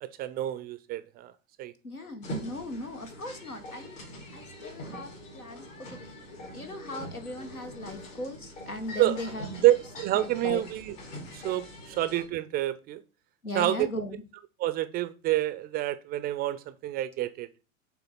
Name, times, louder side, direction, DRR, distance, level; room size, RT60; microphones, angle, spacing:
voice 1, 0.0-1.3 1.6-1.7 9.0-9.2 9.5-10.9 11.3-13.0 13.6-13.9 14.6-17.5, right 14 dB, 25° right, 0.4 m, -28 dB
voice 2, 1.8-4.0 4.3-6.2 6.5-9.5 10.2-10.6 13.4-14.2, left 1 dB, 90° left, 1.4 m, -38 dB
sound 1, 2.2-12.3, equal, 65° left, 3.2 m, -43 dB
6.8 x 3.8 x 5.6 m
figure-of-eight pair, 80°, 42 cm